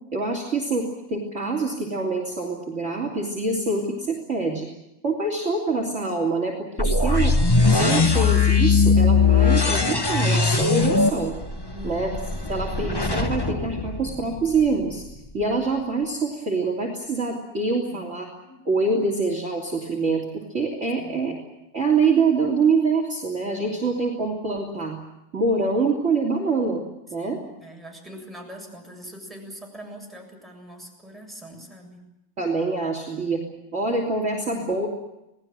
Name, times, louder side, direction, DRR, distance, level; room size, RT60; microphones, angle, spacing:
voice 1, 0.1-4.7 5.0-7.4 7.7-11.3 11.8-12.1 12.5-15.0 15.3-18.3 18.7-21.4 21.7-25.0 25.3-26.8 27.1-27.4 32.4-33.4 33.7-34.9, right 3 dB, 30° right, 1 dB, 3.4 m, -25 dB
sound 1, 6.8-14.7, left 4 dB, 20° left, 0.7 m, -20 dB
voice 2, 11.7-12.5 17.9-18.1 18.3-18.7 21.0-21.4 23.6-23.9 27.2-32.0 33.5-33.7, equal, ahead, 0 dB, 7.3 m, -43 dB
28.5 x 19.5 x 7.5 m, 0.91 s
omnidirectional pair, 2.3 m